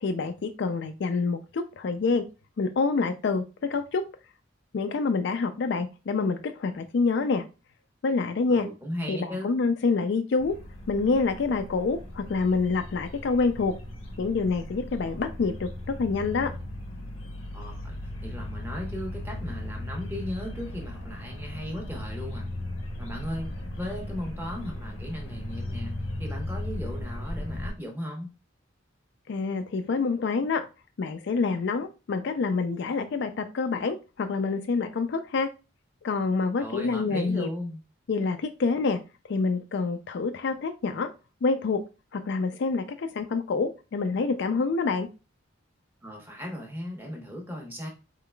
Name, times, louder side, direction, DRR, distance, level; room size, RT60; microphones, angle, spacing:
voice 1, 0.0-2.2 2.6-4.0 4.7-7.4 8.0-8.7 9.1-9.2 9.4-10.5 10.9-13.7 14.2-16.5 29.3-30.6 31.0-35.5 36.0-37.5 38.1-39.0 39.3-41.1 41.4-41.8 42.1-45.1, left 4 dB, 55° left, 8 dB, 0.4 m, -27 dB
voice 2, 8.5-9.6 17.5-22.5 23.0-28.3 36.6-37.8 46.0-47.9, equal, 10° right, 1 dB, 1.0 m, -37 dB
sound 1, 10.4-27.7, left 1 dB, 85° left, 0.8 m, -37 dB
4.0 x 3.7 x 2.2 m, 0.30 s
head